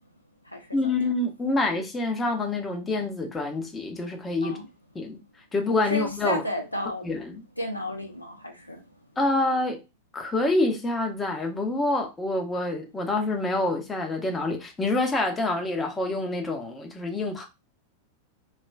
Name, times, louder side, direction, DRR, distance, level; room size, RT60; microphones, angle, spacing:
voice 1, 0.7-4.6 4.9-5.2 5.5-6.4 7.0-7.4 9.2-9.8 10.1-17.5, left 2 dB, 15° left, 0.6 m, -27 dB
voice 2, 5.8-7.1 7.6-8.8, left 1 dB, 85° left, 0.6 m, -32 dB
3.2 x 2.3 x 2.2 m
figure-of-eight pair, 90°, 0 cm